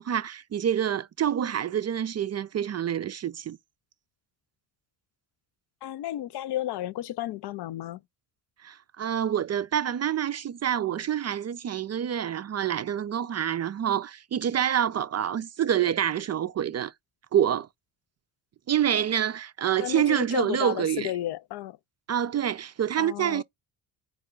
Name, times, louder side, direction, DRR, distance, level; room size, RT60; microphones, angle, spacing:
voice 1, 0.0-3.6 8.6-16.9 17.3-17.7 18.7-21.1 22.1-23.4, right 9 dB, 35° right, 0.4 m, -27 dB
voice 2, 5.8-8.0 19.8-21.8 23.0-23.4, left 13 dB, 55° left, 0.5 m, -33 dB
4.7 x 2.2 x 3.6 m
hypercardioid pair, 50°, 50 cm